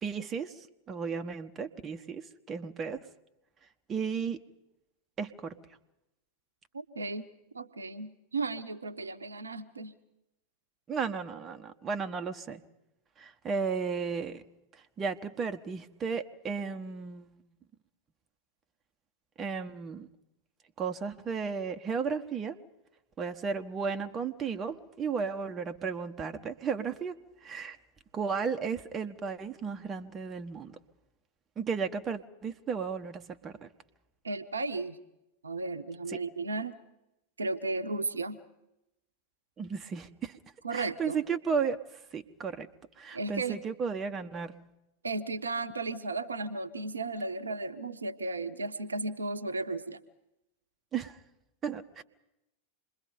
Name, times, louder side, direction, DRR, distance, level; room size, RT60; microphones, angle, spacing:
voice 1, 0.0-3.0 3.9-4.4 5.2-5.6 10.9-12.6 13.2-14.4 15.0-17.4 19.4-20.1 20.8-22.6 23.2-27.2 27.4-27.8 28.1-30.8 31.6-33.7 36.1-36.2 39.6-40.4 40.7-41.8 42.1-42.7 43.0-44.6 50.9-51.2 51.6-52.0, right 6 dB, 25° right, 6 dB, 1.1 m, -34 dB
voice 2, 6.7-7.3 7.5-9.9 34.2-35.0 35.4-36.8 37.4-38.4 40.6-41.2 43.1-43.6 45.0-50.0, right 3 dB, 75° right, 8 dB, 1.1 m, -34 dB
27.0 x 22.0 x 5.2 m, 0.90 s
figure-of-eight pair, 90°, 0 cm